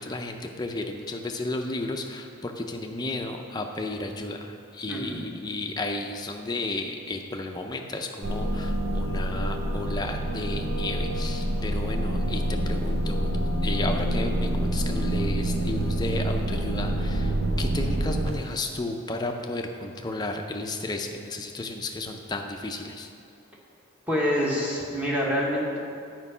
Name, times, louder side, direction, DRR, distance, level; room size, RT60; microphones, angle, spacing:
voice 1, 0.0-13.3 13.6-23.1, left 2 dB, 20° left, 3 dB, 0.5 m, -33 dB
voice 2, 4.9-5.3 24.1-25.8, equal, 5° right, -4 dB, 1.1 m, -26 dB
sound 1, 8.2-18.6, right 1 dB, 85° right, 0.7 m, -27 dB
8.2 x 4.5 x 5.5 m, 2.4 s
head